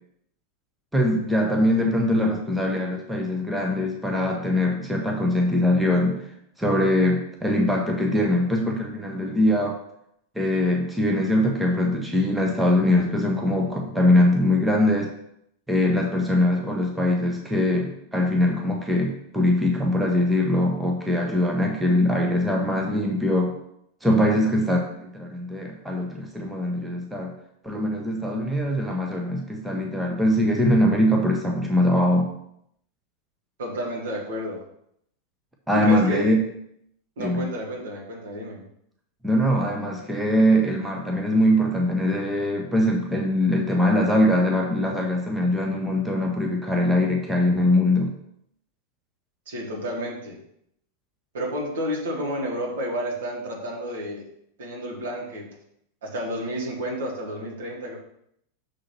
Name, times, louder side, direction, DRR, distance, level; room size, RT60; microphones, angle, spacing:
voice 1, 0.9-6.2 6.6-9.8 10.3-15.1 15.7-23.6 24.0-27.3 27.6-32.3 35.7-36.4 37.2-37.5 39.2-48.1, left 1 dB, 5° right, 0 dB, 0.9 m, -22 dB
voice 2, 33.6-34.6 35.7-36.3 37.2-38.6 49.5-50.4 51.3-54.3 54.6-55.5 56.0-58.0, equal, 60° right, -3 dB, 2.0 m, -30 dB
6.4 x 3.8 x 6.0 m, 0.74 s
figure-of-eight pair, 90°, 0 cm